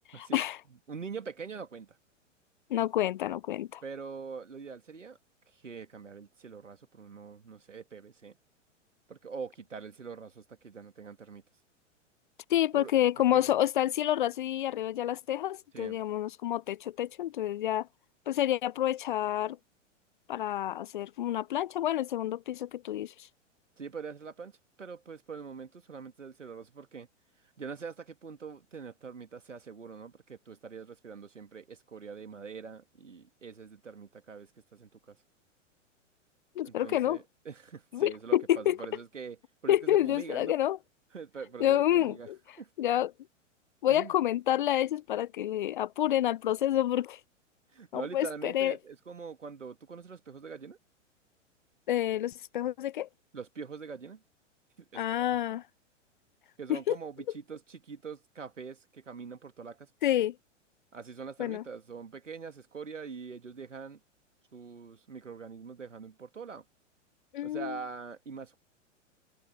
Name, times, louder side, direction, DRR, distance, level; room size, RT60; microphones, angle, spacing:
voice 1, 0.1-0.6 2.7-3.8 12.5-17.9 18.3-19.6 20.3-23.3 36.6-37.2 37.9-38.8 39.7-40.8 41.6-42.4 42.8-43.1 43.8-47.2 47.9-48.8 51.9-53.1 54.9-55.6 56.7-57.0 60.0-60.3 61.4-61.6 67.3-67.8, left 12 dB, 40° left, 0.5 m, -28 dB
voice 2, 0.9-1.9 3.8-5.2 5.5-8.4 9.1-11.4 12.7-12.9 13.3-13.5 15.7-16.0 23.8-27.1 27.6-35.2 36.6-39.4 39.6-40.6 41.1-42.3 42.6-42.7 43.9-44.1 47.7-50.8 53.3-54.2 54.8-55.6 56.6-59.9 60.9-64.0 64.5-66.6 67.4-68.6, right 5 dB, 75° right, 2.6 m, -43 dB
figure-of-eight pair, 105°, 38 cm